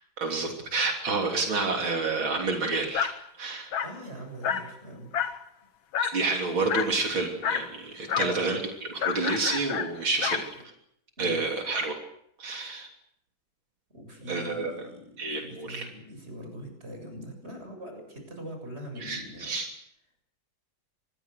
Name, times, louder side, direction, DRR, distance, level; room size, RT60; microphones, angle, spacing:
voice 1, 0.2-3.7 6.0-8.6 8.9-10.4 11.2-12.0 12.4-12.9 14.3-14.7 15.2-15.9 19.0-19.7, right 3 dB, 85° right, 2 dB, 4.0 m, -29 dB
Dog, 2.9-3.2 3.7-4.0 4.4-4.7 5.1-5.4 5.9-6.2 6.7-7.0 7.4-7.7 8.1-8.4 9.0-10.5, left 8 dB, 80° left, 2.1 m, -29 dB
voice 2, 3.8-5.1 8.1-8.6 11.2-11.5 13.9-19.5, equal, 30° right, 4 dB, 7.5 m, -41 dB
26.5 x 21.0 x 6.7 m, 0.73 s
omnidirectional pair, 2.1 m